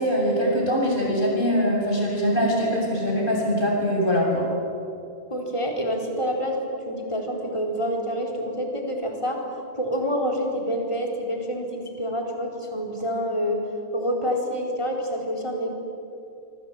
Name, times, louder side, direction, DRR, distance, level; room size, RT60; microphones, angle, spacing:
voice 1, 0.0-4.5, equal, 50° left, -2 dB, 7.7 m, -22 dB
voice 2, 5.3-9.4 9.7-13.6 13.9-15.7, equal, 25° left, 1 dB, 4.4 m, -27 dB
26.5 x 24.0 x 9.1 m, 2.6 s
omnidirectional pair, 1.1 m